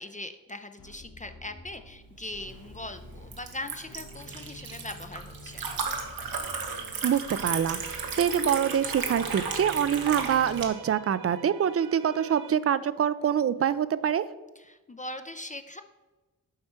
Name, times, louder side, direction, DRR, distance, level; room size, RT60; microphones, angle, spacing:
voice 1, 0.0-5.7 14.6-15.8, left 1 dB, 20° left, 8 dB, 0.4 m, -40 dB
sound 1, 0.8-10.7, left 2 dB, 70° left, 1.3 m, -49 dB
Liquid, 2.3-10.7, right 5 dB, 85° right, 0.9 m, -35 dB
voice 2, 7.0-7.8 8.2-14.3, right 8 dB, 45° right, 15 dB, 0.4 m, -25 dB
sound 2, 7.5-12.5, right 8 dB, 60° right, 0.8 m, -46 dB
7.5 x 4.3 x 4.5 m, 1.2 s
cardioid pair, 45°, 34 cm